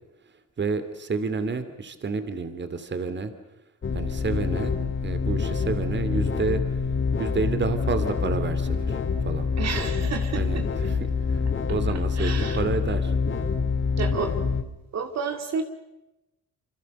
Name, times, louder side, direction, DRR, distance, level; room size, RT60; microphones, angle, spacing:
voice 1, 0.6-3.3 3.9-4.7 5.0-6.8 7.2-9.5 10.3-11.4 11.7-13.1, right 4 dB, 35° right, 10 dB, 2.7 m, -30 dB
sound 1, 3.8-14.6, left 5 dB, 40° left, 2.4 m, -26 dB
voice 2, 9.6-10.6 12.2-12.6 14.0-14.3 14.9-15.6, right 6 dB, 60° right, 6 dB, 2.5 m, -30 dB
27.0 x 25.5 x 6.6 m, 0.95 s
cardioid pair, 90°, 30 cm